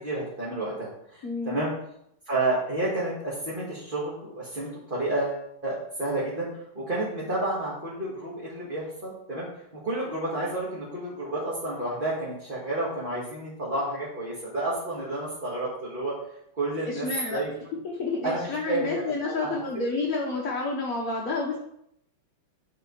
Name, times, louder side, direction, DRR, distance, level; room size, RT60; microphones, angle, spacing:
voice 1, 0.0-1.7 2.3-9.5 9.7-16.2 16.6-17.5 18.2-19.5, right 2 dB, 25° right, -7 dB, 2.2 m, -30 dB
voice 2, 1.2-1.6 16.8-17.4 17.8-21.6, left 3 dB, 50° left, -2 dB, 1.3 m, -29 dB
9.6 x 4.5 x 5.5 m, 0.76 s
omnidirectional pair, 2.3 m